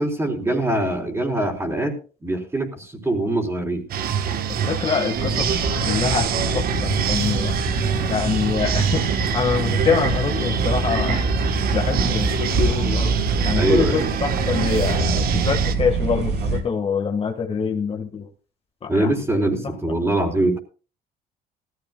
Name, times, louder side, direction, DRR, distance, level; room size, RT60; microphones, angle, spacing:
voice 1, 0.0-3.8 13.6-14.0 18.9-20.6, right 1 dB, 15° right, 1 dB, 4.1 m, -23 dB
sound 1, 3.9-15.7, right 8 dB, 60° right, 1.3 m, -26 dB
voice 2, 4.7-6.3 6.5-7.5 8.1-11.3 11.7-13.1 13.4-18.3 18.8-19.2 19.6-19.7, left 6 dB, 35° left, 2 dB, 1.8 m, -25 dB
sound 2, 5.1-16.6, right 3 dB, 80° right, 3.2 m, -24 dB
19.0 x 14.5 x 2.4 m, 0.35 s
cardioid pair, 110°, 17 cm